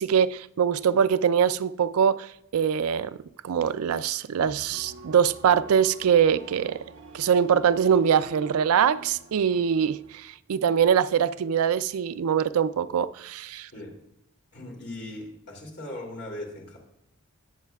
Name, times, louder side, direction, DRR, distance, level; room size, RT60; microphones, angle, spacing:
voice 1, 0.0-3.2 3.4-6.8 7.1-13.7, right 8 dB, 80° right, 0.4 m, -23 dB
sound 1, 4.4-10.2, right 4 dB, 55° right, 0.9 m, -45 dB
voice 2, 14.5-16.8, left 1 dB, 50° left, 2.7 m, -39 dB
18.5 x 7.4 x 2.3 m
head